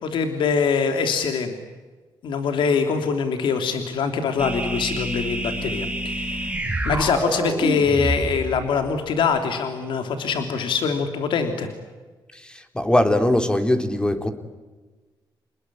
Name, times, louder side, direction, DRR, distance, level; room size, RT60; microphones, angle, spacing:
voice 1, 0.0-1.5 2.2-6.5 6.8-11.7, left 5 dB, 80° left, 6 dB, 3.2 m, -23 dB
sound 1, 4.4-9.0, right 1 dB, 15° right, 4.1 m, -27 dB
voice 2, 12.3-14.3, left 1 dB, 10° left, 7 dB, 3.6 m, -21 dB
29.5 x 20.5 x 9.9 m, 1.3 s
cardioid pair, 90°, 8 cm